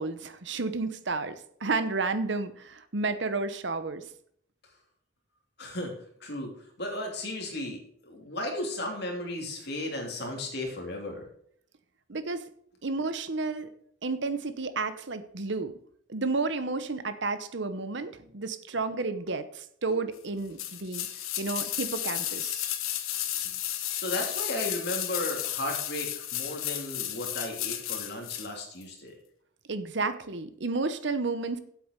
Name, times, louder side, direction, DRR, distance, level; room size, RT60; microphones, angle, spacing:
voice 1, 0.0-4.0 12.1-12.5 12.8-13.7 14.0-15.7 16.1-21.1 21.4-22.6 29.7-31.6, right 3 dB, 60° right, 11 dB, 0.9 m, -31 dB
voice 2, 5.6-5.9 6.2-6.5 6.8-11.3 19.9-20.0 23.9-29.1, left 1 dB, 55° left, 1 dB, 2.9 m, -35 dB
sound 1, 20.6-28.5 28.8-28.9, left 12 dB, 90° left, 1.1 m, -33 dB
8.6 x 8.2 x 6.6 m, 0.65 s
head